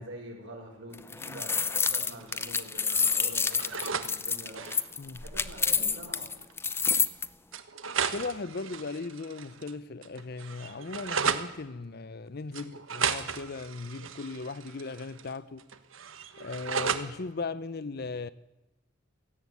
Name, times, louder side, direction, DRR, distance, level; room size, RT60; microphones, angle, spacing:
voice 1, 0.0-4.7 5.2-6.4, right 1 dB, 65° right, 5.6 m, -45 dB
sound 1, 0.9-7.3, left 5 dB, 10° left, 0.6 m, -28 dB
sound 2, 2.0-2.6 2.9-4.1 4.4-4.9 6.0-6.1 6.4-6.5 7.5-9.7 10.0-11.5 12.5-15.3 15.6-17.1, right 6 dB, 85° right, 1.4 m, -34 dB
voice 2, 8.1-15.6 16.4-18.3, left 3 dB, 50° left, 0.6 m, -37 dB
17.5 x 15.5 x 9.6 m
head